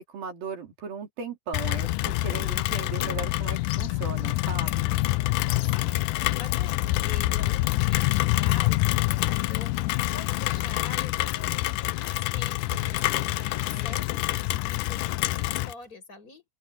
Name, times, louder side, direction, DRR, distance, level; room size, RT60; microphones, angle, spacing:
voice 1, 0.0-4.9, right 5 dB, 85° right, 5.5 m, -37 dB
Rain, 1.5-15.7, left 18 dB, 80° left, 2.1 m, -26 dB
voice 2, 5.2-9.7 10.1-16.4, left 4 dB, 25° left, 7.2 m, -45 dB
sound 1, 12.6-14.0, left 6 dB, 55° left, 3.3 m, -47 dB
omnidirectional pair, 4.0 m